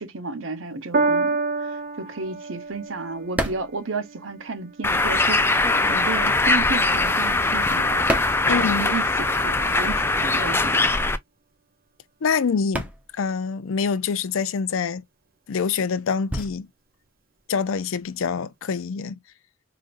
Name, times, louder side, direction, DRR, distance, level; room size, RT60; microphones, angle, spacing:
voice 1, 0.0-8.1 8.5-10.9, right 3 dB, 75° right, 0.9 m, -33 dB
Piano, 0.9-7.5 8.3-8.4, right 3 dB, 45° right, 0.6 m, -30 dB
sound 1, 2.3-4.9 5.2-9.3 9.6-18.3, right 1 dB, 5° right, 0.8 m, -34 dB
Bird, 4.8-11.2, left 2 dB, 10° left, 0.4 m, -21 dB
voice 2, 8.5-8.9 12.2-15.0 15.5-16.7 17.5-19.2, left 5 dB, 85° left, 0.5 m, -25 dB
5.0 x 2.5 x 2.5 m
head